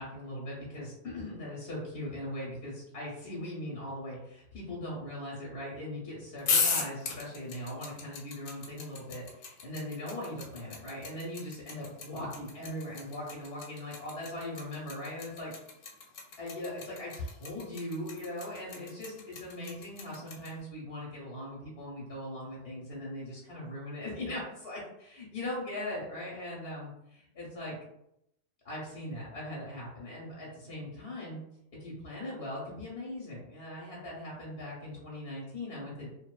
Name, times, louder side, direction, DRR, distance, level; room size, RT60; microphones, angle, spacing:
voice 1, 0.0-15.5 16.4-27.8 28.6-31.4 31.7-36.1, left 1 dB, 60° left, -5 dB, 0.9 m, -40 dB
sound 1, 6.4-20.5, left 5 dB, 85° left, 1.0 m, -35 dB
2.6 x 2.1 x 2.2 m, 0.80 s
omnidirectional pair, 1.3 m